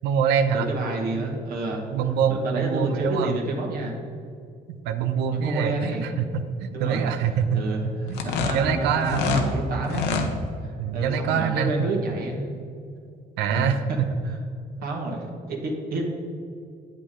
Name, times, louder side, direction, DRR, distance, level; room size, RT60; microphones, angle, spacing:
voice 1, 0.0-0.7 1.9-3.4 4.7-8.2 8.5-9.4 10.8-11.9 13.4-13.8, right 7 dB, 90° right, 8 dB, 0.6 m, -25 dB
voice 2, 0.5-1.9 2.3-4.0 5.3-6.1 6.7-7.1 7.5-10.1 10.6-12.7 13.5-14.0 14.2-14.4 14.8-16.0, right 2 dB, 60° right, -1 dB, 1.5 m, -30 dB
sound 1, 8.1-9.5 9.8-10.3, left 5 dB, 85° left, 1.0 m, -25 dB
8.5 x 8.3 x 3.7 m, 2.4 s
cardioid pair, 110°, 17 cm